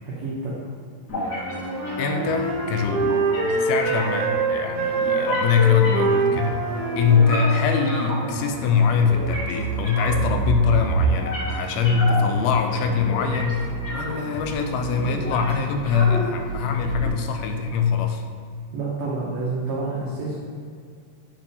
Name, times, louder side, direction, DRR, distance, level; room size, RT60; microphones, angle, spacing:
voice 1, 0.0-0.7 7.1-7.3 18.7-20.4, right 3 dB, 80° right, -7 dB, 1.5 m, -29 dB
sound 1, 1.1-17.1, right 2 dB, 55° left, 1.1 m, -29 dB
Wind instrument woodwind instrument, 1.3-8.2, right 3 dB, 65° right, 2.3 m, -25 dB
voice 2, 2.0-3.1 3.6-6.6 7.0-18.2, left 6 dB, 80° left, 5 dB, 2.3 m, -22 dB
5.9 x 4.4 x 5.2 m, 2.1 s
omnidirectional pair, 4.6 m